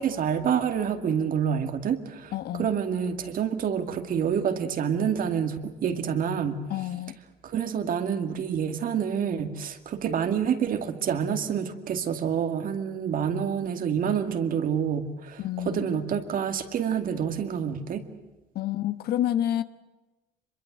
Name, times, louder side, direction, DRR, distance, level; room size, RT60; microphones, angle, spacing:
voice 1, 0.0-2.3 2.6-6.6 7.4-18.0, right 8 dB, 55° right, 8 dB, 2.3 m, -27 dB
voice 2, 2.3-2.7 6.7-7.1 15.4-16.0 18.5-19.6, left 12 dB, 70° left, 12 dB, 1.3 m, -29 dB
25.0 x 22.5 x 7.8 m, 1.1 s
cardioid pair, 110°, 17 cm